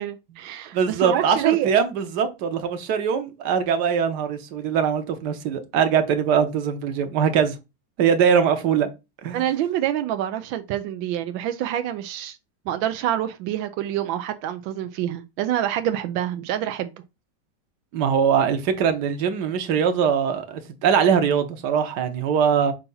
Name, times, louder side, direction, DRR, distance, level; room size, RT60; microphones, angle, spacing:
voice 1, 0.0-1.7 9.3-12.4 12.7-16.9, right 11 dB, 90° right, 1.4 m, -27 dB
voice 2, 0.7-7.5 8.0-8.9 9.2-9.4 17.9-22.7, right 7 dB, 65° right, 1.5 m, -22 dB
6.9 x 2.7 x 5.4 m
omnidirectional pair, 2.0 m